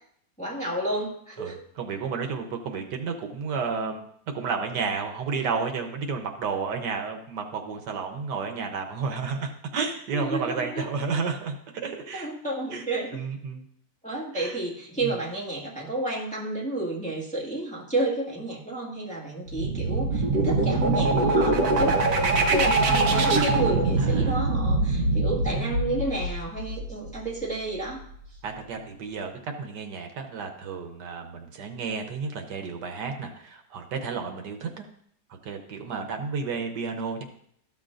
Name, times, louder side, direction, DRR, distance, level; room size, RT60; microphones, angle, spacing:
voice 1, 0.4-1.5 10.1-10.9 12.1-13.2 14.0-28.0, right 2 dB, 5° left, -5 dB, 1.6 m, -31 dB
voice 2, 1.4-4.1 4.3-12.3 12.7-12.8 13.1-13.6 14.3-14.6 15.0-15.2 24.0-24.4 25.5-26.0 28.4-34.8 35.4-37.2, right 5 dB, 80° right, 4 dB, 1.5 m, -32 dB
sound 1, 19.5-27.1, right 2 dB, 65° right, 1.4 m, -24 dB
sound 2, 19.6-25.5, right 3 dB, 45° right, 1.4 m, -30 dB
13.0 x 6.6 x 2.5 m, 0.66 s
omnidirectional pair, 1.8 m